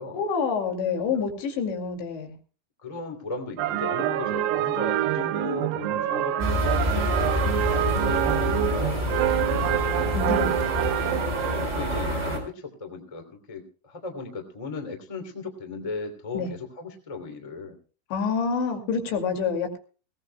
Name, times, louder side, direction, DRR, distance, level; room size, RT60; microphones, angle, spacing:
voice 1, 0.1-2.3 10.1-10.6 16.3-16.5 18.1-19.8, left 5 dB, 65° left, 4 dB, 4.4 m, -27 dB
voice 2, 2.8-10.0 11.6-17.7, left 3 dB, 20° left, 4 dB, 0.9 m, -37 dB
sound 1, 3.6-11.7, right 13 dB, 85° right, 2.4 m, -26 dB
sound 2, 6.4-12.4, left 1 dB, 15° right, 3.9 m, -27 dB
21.5 x 17.5 x 2.2 m, 0.37 s
omnidirectional pair, 5.8 m